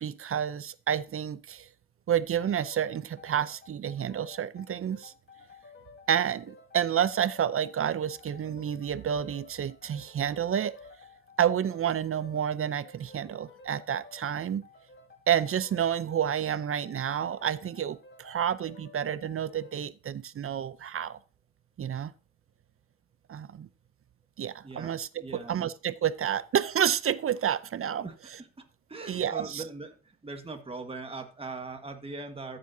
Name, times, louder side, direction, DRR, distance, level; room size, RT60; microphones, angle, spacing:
voice 1, 0.0-1.7 2.1-5.1 6.1-10.8 11.4-14.6 15.3-21.2 21.8-22.1 23.3-23.7 24.4-28.1 29.0-29.6, right 9 dB, 40° right, 0.6 m, -29 dB
sound 1, 2.4-19.8, left 4 dB, 30° left, 1.8 m, -53 dB
voice 2, 24.6-25.0 25.2-25.7 28.0-28.1 28.6-28.7 28.9-30.0 30.2-32.6, right 3 dB, 15° right, 1.5 m, -40 dB
14.0 x 7.6 x 2.7 m
cardioid pair, 110°, 36 cm